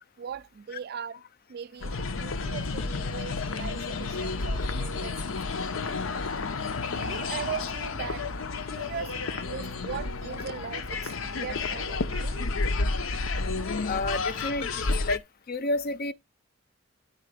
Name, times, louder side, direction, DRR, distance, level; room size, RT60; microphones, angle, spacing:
voice 1, 0.2-1.2 1.5-5.9 6.9-8.3 8.7-12.4, right 7 dB, 50° right, 0.4 m, -39 dB
sound 1, 1.8-15.2, left 3 dB, 85° left, 0.7 m, -31 dB
voice 2, 13.9-15.2 15.5-16.1, left 2 dB, 50° left, 0.6 m, -30 dB
9.8 x 4.1 x 4.9 m
head